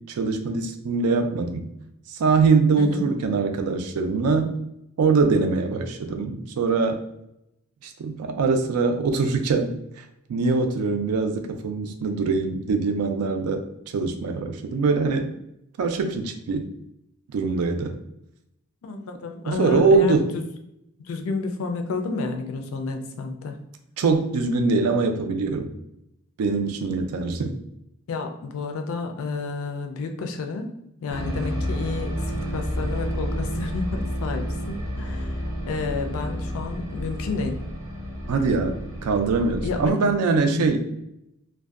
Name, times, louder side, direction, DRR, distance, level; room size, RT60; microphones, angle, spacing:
voice 1, 0.1-1.7 2.1-4.5 5.0-7.0 7.8-10.0 10.3-13.6 13.9-15.3 15.8-16.7 17.3-18.0 19.5-20.3 24.0-25.7 26.4-27.6 38.3-40.8, right 4 dB, 85° right, 6 dB, 0.4 m, -23 dB
voice 2, 18.8-20.4 21.1-23.6 28.1-30.7 31.0-37.6 39.6-40.0 40.5-40.9, left 3 dB, 65° left, 5 dB, 0.4 m, -30 dB
sound 1, 31.1-39.9, equal, 15° right, 0.6 m, -30 dB
2.5 x 2.1 x 2.3 m, 0.82 s
head